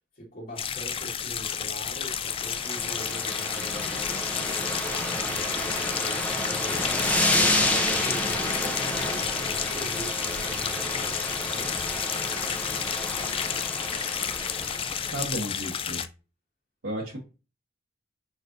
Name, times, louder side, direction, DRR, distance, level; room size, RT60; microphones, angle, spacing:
voice 1, 0.1-11.7, equal, 50° left, 1.7 m, -43 dB
sound 1, 0.6-16.1, left 8 dB, 30° left, 0.4 m, -31 dB
sound 2, 2.1-15.3, left 1 dB, 10° left, 0.8 m, -30 dB
voice 2, 15.1-16.0 16.8-17.2, right 1 dB, 70° right, 1.3 m, -33 dB
6.3 x 3.3 x 2.6 m
head